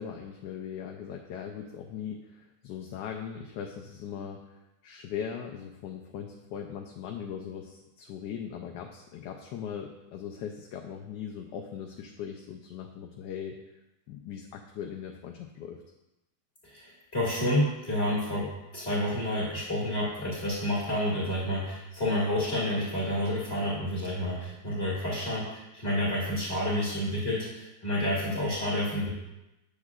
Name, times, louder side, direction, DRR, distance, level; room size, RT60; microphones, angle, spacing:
voice 1, 0.0-13.6 14.1-15.8, left 8 dB, 85° left, 1 dB, 1.3 m, -39 dB
voice 2, 16.6-29.1, left 1 dB, 40° left, -7 dB, 2.1 m, -29 dB
8.2 x 7.3 x 2.4 m, 0.96 s
omnidirectional pair, 1.8 m